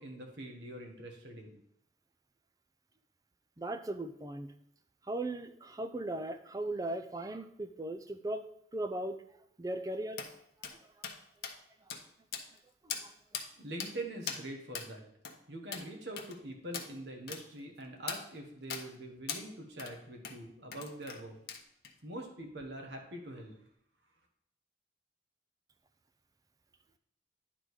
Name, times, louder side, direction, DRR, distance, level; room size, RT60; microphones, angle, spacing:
voice 1, 0.0-1.6 13.6-15.0 15.5-21.4 22.0-23.5, right 1 dB, 80° right, 2 dB, 1.5 m, -44 dB
voice 2, 3.6-4.5 5.1-8.4 8.7-9.2 9.6-10.2 12.8-13.1, right 1 dB, 20° right, 9 dB, 0.4 m, -38 dB
sound 1, 10.2-10.3 10.6-10.8 11.0-11.2 11.4-11.6 11.9-12.0 12.3-12.6 12.9-13.0 13.3-13.5 13.8-13.9 14.3-14.4 14.7-14.9 15.2-15.4 15.7-15.9 16.2-16.4 16.7-16.9 17.3-17.4 18.1-18.2 18.7-18.9 19.3-19.4 19.8-19.9 20.2-20.4 20.7-21.2 21.5-21.9, left 7 dB, 65° left, 0.8 m, -40 dB
10.0 x 3.8 x 4.8 m, 0.73 s
head